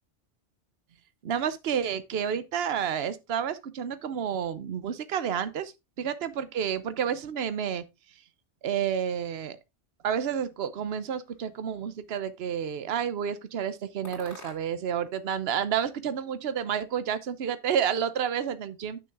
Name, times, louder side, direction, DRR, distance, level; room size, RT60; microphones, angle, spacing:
voice 1, 1.2-5.7 6.0-7.8 8.6-9.6 10.0-19.0, right 8 dB, 65° right, 1.0 m, -30 dB
sound 1, 10.8-11.9 12.5-13.2 14.0-15.0 15.3-16.3, left 1 dB, 75° left, 3.3 m, -51 dB
9.6 x 6.2 x 3.5 m
omnidirectional pair, 1.2 m